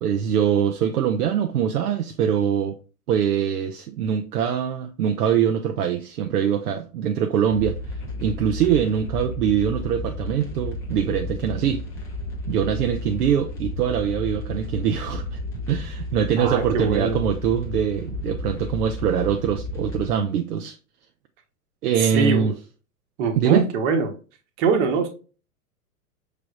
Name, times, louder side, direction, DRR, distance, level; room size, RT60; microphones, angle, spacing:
voice 1, 0.0-2.8 3.1-7.8 8.2-11.8 12.5-15.4 15.7-20.8 21.8-22.5 23.4-23.6, right 8 dB, 75° right, 0.6 m, -23 dB
sound 1, 7.5-20.1, left 2 dB, 5° left, 0.3 m, -32 dB
voice 2, 16.4-17.2 22.0-22.5 23.2-24.1 24.6-25.1, right 5 dB, 45° right, 1.1 m, -23 dB
5.7 x 3.3 x 2.4 m
hypercardioid pair, 110°, 46 cm